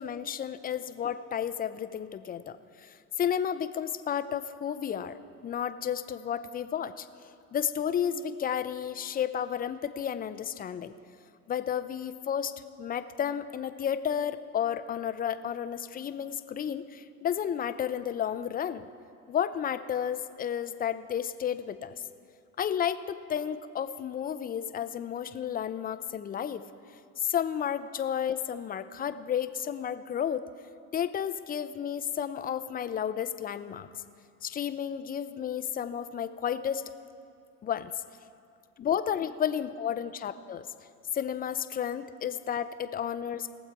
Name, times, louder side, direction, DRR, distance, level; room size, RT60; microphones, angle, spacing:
voice 1, 0.0-7.1 7.5-10.9 11.5-12.5 12.8-18.9 19.3-21.9 22.6-26.7 27.2-30.5 30.9-33.9 34.4-36.8 37.6-37.9 38.8-40.7 41.1-43.5, left 9 dB, 20° left, 11 dB, 0.4 m, -32 dB
21.5 x 7.2 x 4.6 m, 2.4 s
supercardioid pair, 105°, 42 cm